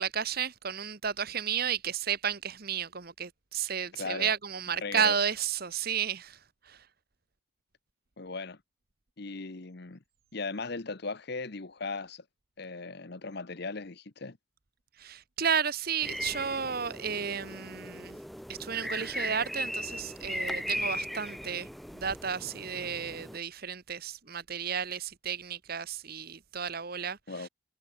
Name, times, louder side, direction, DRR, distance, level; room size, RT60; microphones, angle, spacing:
voice 1, 0.0-6.4 6.7-6.8 15.0-18.2 18.5-21.7 21.9-27.5, right 7 dB, 45° right, 1.2 m, -32 dB
voice 2, 3.9-4.3 4.8-5.2 8.2-8.6 9.2-10.0 10.3-12.2 12.6-14.4 27.3-27.5, left 3 dB, 50° left, 1.0 m, -37 dB
sound 1, 16.0-23.4, equal, ahead, 1.1 m, -38 dB
head